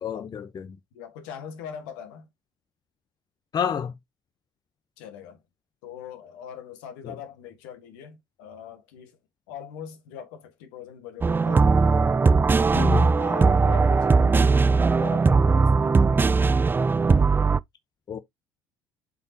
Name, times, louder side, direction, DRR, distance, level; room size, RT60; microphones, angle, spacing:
voice 1, 0.0-0.7 3.5-3.9 12.7-13.1 18.1-18.2, left 7 dB, 40° left, 0.9 m, -28 dB
voice 2, 0.9-2.3 5.0-5.4 5.8-9.2 9.5-11.7 13.1-16.6, left 8 dB, 70° left, 1.7 m, -41 dB
sound 1, 11.2-17.6, right 4 dB, 20° right, 0.4 m, -19 dB
7.6 x 5.5 x 2.9 m
hypercardioid pair, 60°, 11 cm